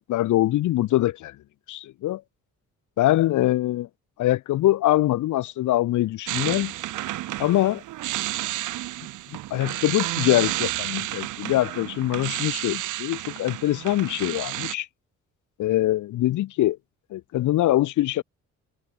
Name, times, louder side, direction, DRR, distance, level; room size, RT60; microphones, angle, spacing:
voice 1, 0.1-1.3 1.7-2.2 3.0-3.9 4.2-6.7 7.4-7.8 9.5-14.9 15.6-16.8 17.1-18.2, left 15 dB, 75° left, 1.0 m, -23 dB
sound 1, 6.3-14.8, right 15 dB, 85° right, 1.7 m, -31 dB
cardioid pair, 90°, 30 cm